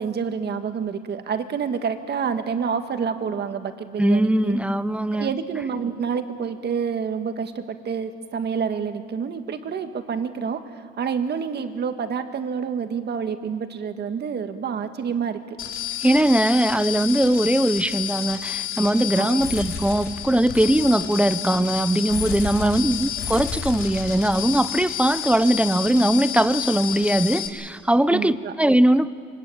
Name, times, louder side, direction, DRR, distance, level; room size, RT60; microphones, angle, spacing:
voice 1, 0.0-4.6 5.1-15.4 19.1-19.4 22.6-22.7 28.1-28.5, right 6 dB, 55° right, 7 dB, 1.9 m, -28 dB
voice 2, 4.0-5.3 16.0-29.1, right 1 dB, 5° right, 14 dB, 0.8 m, -20 dB
sound 1, 15.6-27.5, left 10 dB, 80° left, 3.1 m, -30 dB
24.0 x 20.0 x 8.8 m, 2.2 s
cardioid pair, 90°, 20 cm